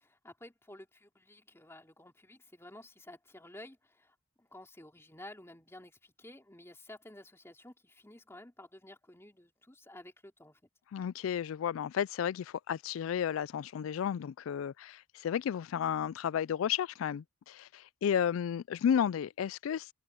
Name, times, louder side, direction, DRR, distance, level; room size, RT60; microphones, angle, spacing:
voice 1, 0.0-10.6, left 1 dB, 15° left, 2.8 m, -52 dB
voice 2, 10.9-19.9, left 8 dB, 90° left, 0.3 m, -32 dB
head